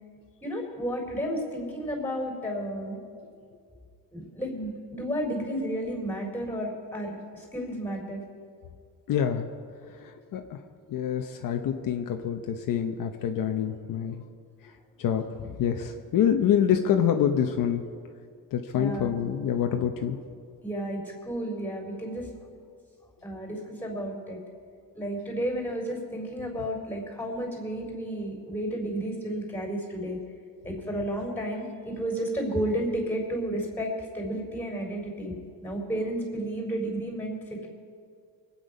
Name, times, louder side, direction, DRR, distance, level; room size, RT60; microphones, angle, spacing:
voice 1, 0.4-3.0 4.1-8.2 18.7-19.1 20.6-22.3 23.2-24.4 24.9-30.2 30.6-35.3 35.6-37.7, right 1 dB, 5° left, 1 dB, 3.8 m, -32 dB
voice 2, 9.1-9.5 10.0-10.6 10.9-14.2 15.0-17.8 18.5-20.2, left 9 dB, 60° left, 5 dB, 0.9 m, -26 dB
23.5 x 8.9 x 5.3 m, 2.3 s
cardioid pair, 130°, 38 cm